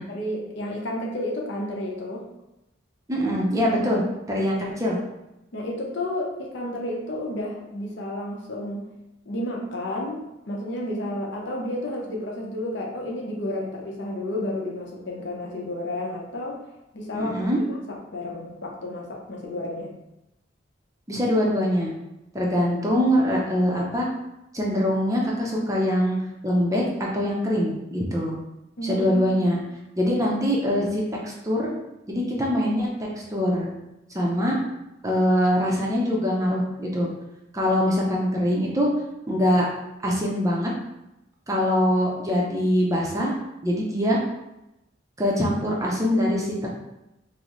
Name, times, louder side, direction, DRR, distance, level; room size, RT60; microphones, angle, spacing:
voice 1, 0.0-2.3 3.8-3.9 5.5-8.9 9.3-16.6 16.9-17.8 18.1-19.9 28.8-29.4, left 1 dB, 65° left, -2 dB, 0.7 m, -31 dB
voice 2, 3.1-5.0 17.1-17.6 21.1-21.9 22.3-24.1 24.5-26.2 26.4-28.4 28.8-29.6 30.0-31.7 32.1-32.9 33.1-33.7 34.1-34.6 35.0-37.1 37.5-38.9 39.3-39.7 40.0-40.7 41.5-43.4 43.6-44.2 45.2-46.7, equal, 15° right, -3 dB, 0.5 m, -23 dB
3.9 x 2.1 x 3.1 m, 0.92 s
head